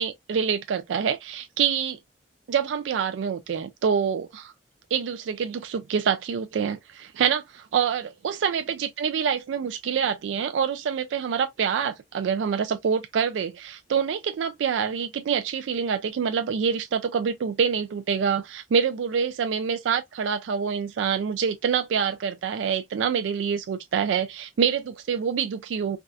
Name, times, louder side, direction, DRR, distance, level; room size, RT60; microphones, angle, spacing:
voice 1, 0.0-2.0 2.5-4.5 4.9-26.0, right 7 dB, 85° right, 0.3 m, -26 dB
3.4 x 2.3 x 2.5 m
head